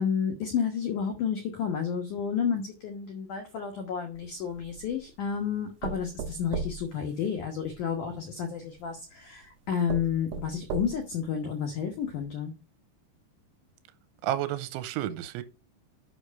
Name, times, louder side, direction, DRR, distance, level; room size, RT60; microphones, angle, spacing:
voice 1, 0.0-12.5, left 7 dB, 75° left, 1.8 m, -31 dB
sound 1, 4.2-5.0 5.8-7.8 8.8-8.9 9.4-9.5 9.9-11.2 11.7-11.8 12.2-12.3, right 5 dB, 70° right, 3.0 m, -37 dB
voice 2, 14.2-15.4, right 13 dB, 90° right, 3.1 m, -31 dB
8.0 x 6.0 x 5.2 m
omnidirectional pair, 5.5 m